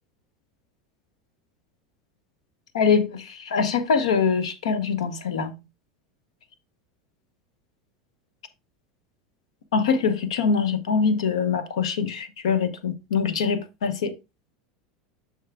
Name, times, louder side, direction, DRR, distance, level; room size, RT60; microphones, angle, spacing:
voice 1, 2.7-5.6 9.7-14.1, left 5 dB, 90° left, 0.9 m, -23 dB
6.6 x 6.2 x 2.3 m
supercardioid pair, 105°, 3 cm